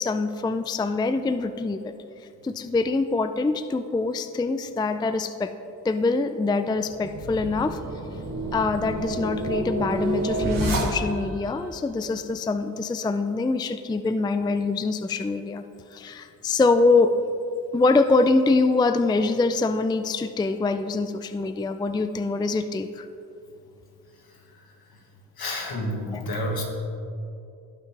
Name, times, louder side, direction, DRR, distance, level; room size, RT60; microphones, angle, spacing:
voice 1, 0.0-1.9 2.4-5.5 5.8-7.8 8.5-15.6 15.9-17.2 17.7-23.1 26.1-26.2, left 3 dB, 10° left, 10 dB, 0.4 m, -24 dB
sound 1, 6.8-11.4, right 2 dB, 55° right, 2.1 m, -29 dB
voice 2, 25.4-26.6, left 1 dB, 65° left, 0 dB, 1.9 m, -29 dB
17.0 x 5.8 x 3.3 m, 2.7 s
cardioid pair, 55°, 39 cm